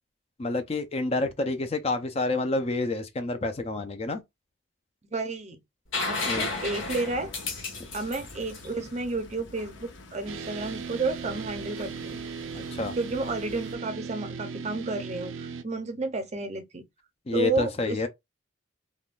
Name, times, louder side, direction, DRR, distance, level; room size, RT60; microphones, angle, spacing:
voice 1, 0.4-4.2 6.3-6.5 12.5-12.9 17.3-18.1, left 2 dB, 30° left, 0.4 m, -28 dB
voice 2, 5.1-5.6 6.1-7.3 7.9-12.2 13.0-16.8 17.3-18.1, right 3 dB, 35° right, 0.6 m, -31 dB
sound 1, 5.9-9.6 11.5-11.6, left 3 dB, 85° left, 1.4 m, -33 dB
sound 2, 6.2-13.8, left 2 dB, 70° left, 0.7 m, -48 dB
sound 3, 10.3-15.6, right 5 dB, 80° right, 0.5 m, -37 dB
3.5 x 2.2 x 2.4 m
head